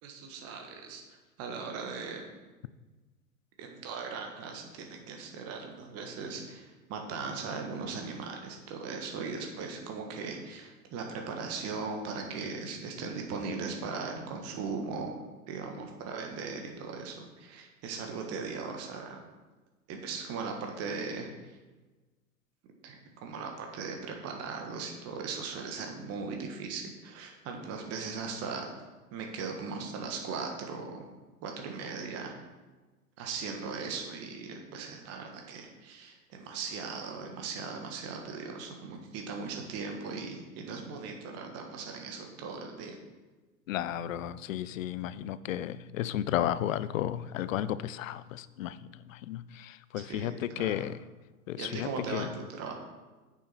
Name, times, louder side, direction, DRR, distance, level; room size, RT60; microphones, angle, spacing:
voice 1, 0.0-2.3 3.6-15.1 15.5-19.2 19.9-21.6 22.8-23.0 23.2-28.7 29.1-31.1 31.4-32.3 33.2-43.0 50.1-50.7 51.6-52.7, right 4 dB, 30° right, 2 dB, 1.5 m, -38 dB
voice 2, 43.7-51.0 51.5-52.4, left 12 dB, 55° left, 15 dB, 0.6 m, -33 dB
9.2 x 7.0 x 4.4 m, 1.2 s
figure-of-eight pair, 100°, 47 cm